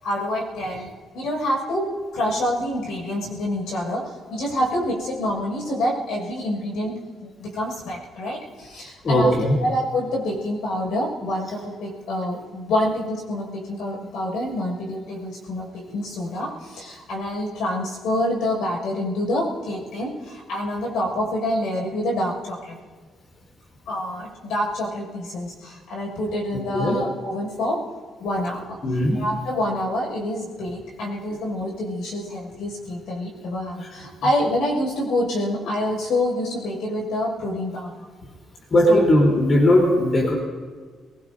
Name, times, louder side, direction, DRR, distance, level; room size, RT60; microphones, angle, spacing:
voice 1, 0.0-9.3 9.6-22.8 23.9-27.8 28.2-38.1 38.9-39.1, left 1 dB, 85° left, -2 dB, 6.0 m, -27 dB
voice 2, 9.0-9.6 26.7-26.9 28.8-29.2 38.7-40.3, left 1 dB, 45° left, -1 dB, 3.7 m, -18 dB
23.5 x 19.5 x 2.7 m, 1.5 s
cardioid pair, 90°, 0 cm